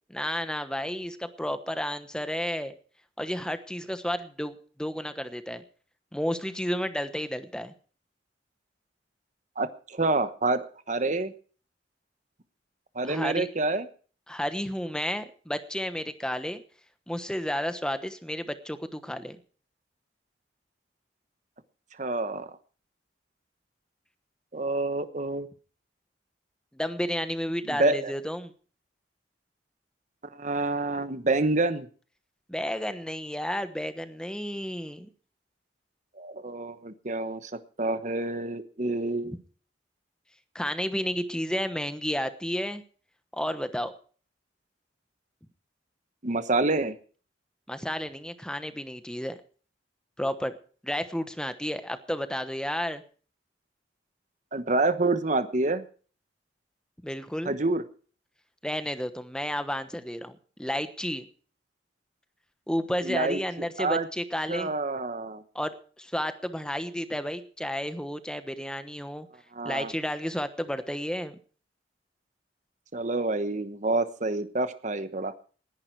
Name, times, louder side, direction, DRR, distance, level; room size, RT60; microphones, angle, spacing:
voice 1, 0.1-2.7 3.2-5.6 6.1-7.7 13.0-13.5 14.3-16.6 17.1-19.4 26.7-28.5 32.5-35.1 40.5-42.8 43.3-43.9 47.7-49.4 50.2-50.5 50.8-53.0 57.0-57.6 58.6-61.3 62.7-64.7 65.5-69.3 69.6-71.4, equal, 5° left, 10 dB, 1.1 m, -32 dB
voice 2, 9.6-11.3 12.9-13.9 22.0-22.6 24.5-25.5 27.7-28.1 30.2-31.9 36.2-37.5 37.8-39.4 46.2-47.0 54.5-55.8 57.4-57.8 63.0-63.4 63.8-64.1 64.5-65.4 69.5-69.9 72.9-75.3, right 2 dB, 40° right, 11 dB, 1.1 m, -27 dB
19.5 x 11.0 x 4.7 m, 0.42 s
head